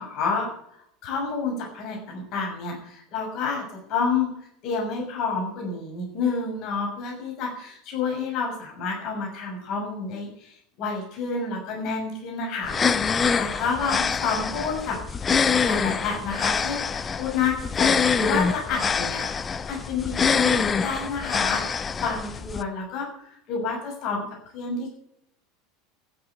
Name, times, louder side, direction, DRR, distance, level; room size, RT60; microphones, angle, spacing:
voice 1, 0.0-3.6 3.9-4.3 4.6-15.0 15.6-19.3 19.7-24.2 24.5-25.0, left 4 dB, 45° left, 0 dB, 6.5 m, -29 dB
sound 1, 12.6-22.6, left 6 dB, 25° left, 0.9 m, -25 dB
14.0 x 10.5 x 8.2 m, 0.72 s
figure-of-eight pair, 75°, 0 cm